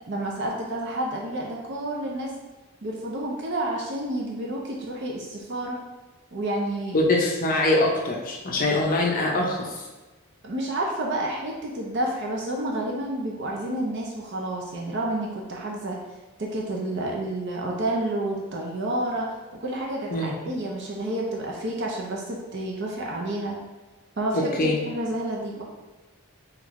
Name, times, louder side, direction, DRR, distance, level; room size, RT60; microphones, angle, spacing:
voice 1, 0.1-2.4 2.8-5.8 6.3-7.0 10.4-16.0 16.4-19.3 19.6-23.6 24.2-25.6, right 1 dB, 55° right, -1 dB, 0.6 m, -29 dB
voice 2, 6.9-9.8 20.1-20.3 24.3-24.8, left 2 dB, 40° left, -1 dB, 0.5 m, -23 dB
3.5 x 3.2 x 3.5 m, 1.2 s
head